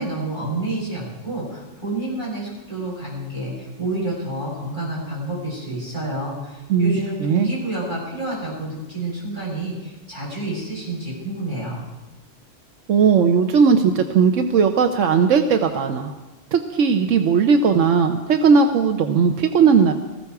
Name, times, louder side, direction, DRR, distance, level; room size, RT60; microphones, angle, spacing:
voice 1, 0.0-11.8, right 2 dB, 40° right, -6 dB, 8.0 m, -29 dB
voice 2, 6.7-7.5 12.9-16.1 16.5-19.9, right 6 dB, 90° right, 6 dB, 1.2 m, -17 dB
19.0 x 15.5 x 4.8 m, 1.2 s
omnidirectional pair, 1.3 m